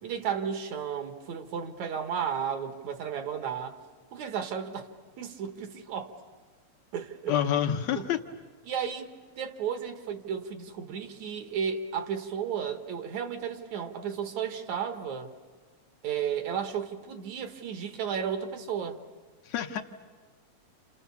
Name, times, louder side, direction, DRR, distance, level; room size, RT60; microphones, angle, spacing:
voice 1, 0.0-3.8 4.1-4.9 5.2-6.2 6.9-7.4 7.9-8.1 8.7-9.1 9.4-15.3 16.0-19.0, right 7 dB, 70° right, 2.6 m, -33 dB
voice 2, 7.3-8.2 19.5-19.8, left 10 dB, 70° left, 2.1 m, -27 dB
29.5 x 28.5 x 7.0 m
omnidirectional pair, 3.4 m